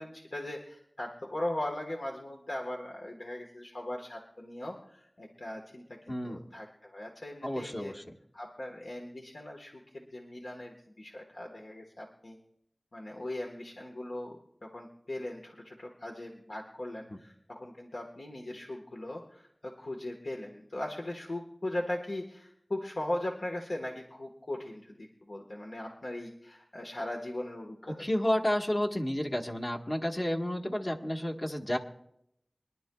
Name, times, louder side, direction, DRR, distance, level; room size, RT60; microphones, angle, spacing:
voice 1, 0.0-7.9 8.3-12.4 12.9-28.0, left 1 dB, 80° left, 0 dB, 1.4 m, -39 dB
voice 2, 6.1-6.4 7.4-8.0 17.1-17.2 27.9-31.8, left 1 dB, 45° left, 1 dB, 1.4 m, -31 dB
24.0 x 11.0 x 2.3 m, 0.77 s
wide cardioid pair, 45°, 0 cm